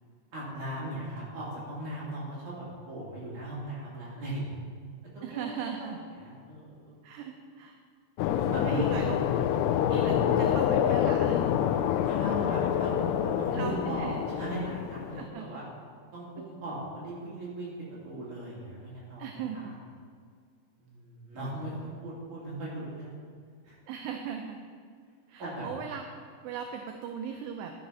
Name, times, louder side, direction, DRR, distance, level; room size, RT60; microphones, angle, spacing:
voice 1, 0.3-4.6 5.1-6.9 8.4-9.2 12.0-15.7 16.1-17.7 18.0-19.3 19.5-19.7 20.8-23.2 23.6-23.8 25.4-25.7, right 1 dB, 45° right, -8 dB, 3.6 m, -38 dB
voice 2, 5.2-6.0 7.0-7.8 8.6-9.2 9.9-11.5 13.5-14.1 15.2-15.5 19.2-19.7 23.9-24.6 25.3-26.0 26.4-27.7, right 7 dB, 80° right, 3 dB, 2.6 m, -38 dB
sound 1, 8.2-15.3, left 10 dB, 85° left, 2.4 m, -27 dB
13.0 x 6.5 x 5.6 m, 2.1 s
omnidirectional pair, 5.3 m